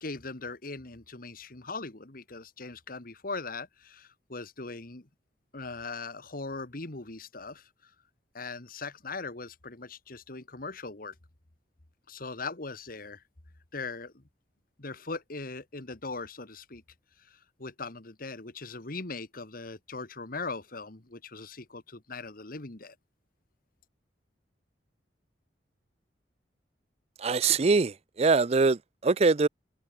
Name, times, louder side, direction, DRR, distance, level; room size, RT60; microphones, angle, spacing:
voice 1, 0.0-5.1 5.5-7.7 8.3-11.1 12.1-13.2 13.7-14.2 14.8-16.8 17.2-23.0, left 3 dB, 55° left, 1.9 m, -40 dB
voice 2, 27.2-29.5, right 4 dB, 35° right, 0.5 m, -23 dB
head